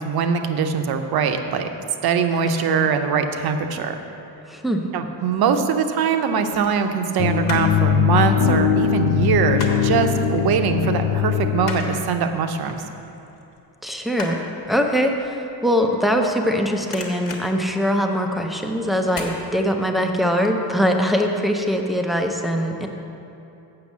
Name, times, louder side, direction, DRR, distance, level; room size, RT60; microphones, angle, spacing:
voice 1, 0.0-1.7 2.0-4.0 4.9-12.8, right 6 dB, 55° right, 7 dB, 0.7 m, -22 dB
voice 2, 4.5-4.8 13.8-14.4 14.7-22.9, equal, ahead, 3 dB, 0.3 m, -22 dB
sound 1, 5.0-5.6 6.4-7.8 8.1-10.0 10.3-10.5 10.9-16.5 16.8-18.4 19.1-19.4 19.8-19.9, left 3 dB, 45° left, 1.2 m, -37 dB
sound 2, 7.2-12.2, left 9 dB, 75° left, 0.6 m, -21 dB
7.8 x 6.3 x 7.2 m, 2.9 s
cardioid pair, 175°, 44 cm